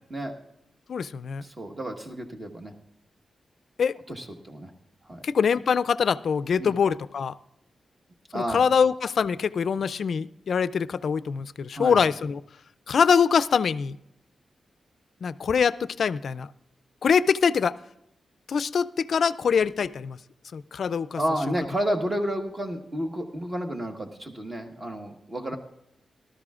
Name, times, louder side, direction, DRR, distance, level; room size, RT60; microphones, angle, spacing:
voice 1, 0.9-1.4 3.8-3.9 5.2-7.3 8.3-12.4 12.9-14.0 15.2-16.5 17.0-17.7 18.5-20.2 20.5-21.2, left 6 dB, 60° left, 15 dB, 0.4 m, -24 dB
voice 2, 1.4-2.7 4.1-4.7 5.1-5.2 6.6-6.8 8.3-8.6 11.7-12.0 21.2-25.6, equal, 25° right, 3 dB, 1.4 m, -31 dB
18.5 x 13.0 x 2.4 m, 0.82 s
wide cardioid pair, 165°, 0 cm